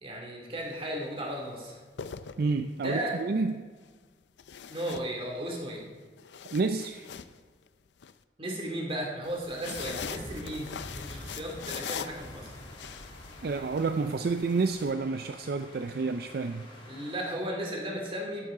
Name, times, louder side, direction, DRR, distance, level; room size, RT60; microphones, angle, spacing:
voice 1, 0.0-1.8 2.8-3.1 4.7-5.8 8.4-12.5 16.8-18.5, right 1 dB, 35° right, -1 dB, 2.4 m, -35 dB
sound 1, 0.6-0.8 1.7-2.9 4.4-5.6 6.0-8.1 9.2-14.9, left 7 dB, 80° left, 0.5 m, -42 dB
voice 2, 2.4-3.7 6.5-7.1 13.4-16.7, right 4 dB, 60° right, 8 dB, 0.4 m, -29 dB
sound 2, 9.7-17.3, left 1 dB, 30° left, 2.1 m, -47 dB
13.0 x 10.5 x 3.7 m, 1.5 s
head